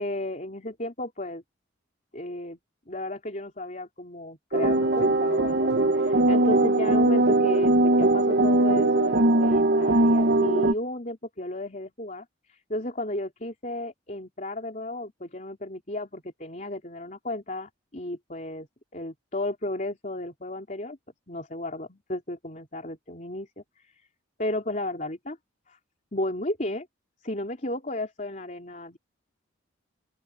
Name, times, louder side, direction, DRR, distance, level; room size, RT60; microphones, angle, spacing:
voice 1, 0.0-1.4 2.1-2.6 2.9-18.7 18.9-21.0 21.3-23.6 24.4-25.4 25.7-25.8 26.1-26.9 27.2-29.0, left 1 dB, 40° left, 3.7 m, -34 dB
sound 1, 4.5-10.7, right 2 dB, 55° right, 1.0 m, -21 dB
open air
head